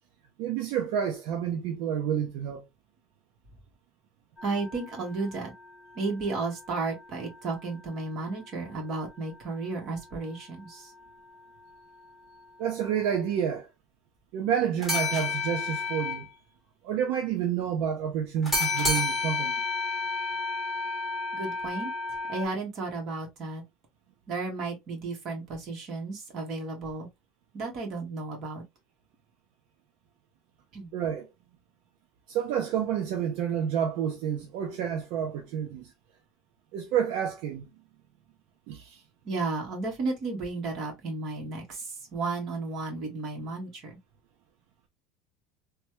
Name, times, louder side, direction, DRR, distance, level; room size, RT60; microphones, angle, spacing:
voice 1, 0.4-2.6 12.6-13.7 14.3-16.3 16.8-19.5 30.9-31.3 32.3-35.9 36.7-37.7 38.7-39.0, right 8 dB, 65° right, 0.5 m, -29 dB
sound 1, 4.4-7.7 8.0-8.1 14.8-16.3 18.4-22.4, left 3 dB, 5° right, 1.2 m, -31 dB
voice 2, 4.4-5.5 5.9-10.9 21.3-21.9 22.3-23.6 24.3-27.1 27.5-28.6 30.7-31.0 39.2-44.0, right 3 dB, 40° right, 1.4 m, -33 dB
3.2 x 2.2 x 3.0 m
cardioid pair, 165°, 0 cm